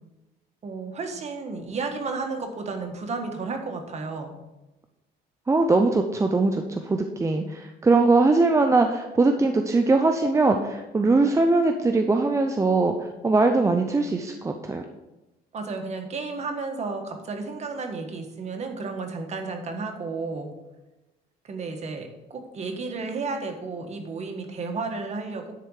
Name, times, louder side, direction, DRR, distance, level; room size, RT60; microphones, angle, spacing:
voice 1, 0.6-4.3 15.5-20.5 21.4-25.5, right 4 dB, 40° right, 4 dB, 1.6 m, -32 dB
voice 2, 5.5-14.8, right 3 dB, 15° right, 5 dB, 0.6 m, -21 dB
10.5 x 4.3 x 6.5 m, 1.0 s
cardioid pair, 110°, 17 cm